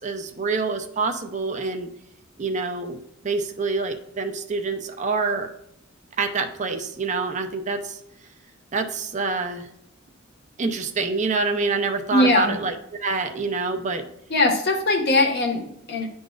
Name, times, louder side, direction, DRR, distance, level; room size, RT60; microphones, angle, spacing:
voice 1, 0.0-1.9 2.4-3.0 3.2-5.5 6.2-8.0 8.7-9.7 10.6-12.8 13.0-14.0, right 4 dB, 35° right, 5 dB, 0.6 m, -26 dB
voice 2, 12.1-12.5 14.3-16.1, left 2 dB, 55° left, 1 dB, 1.4 m, -20 dB
10.5 x 3.9 x 2.4 m, 0.78 s
head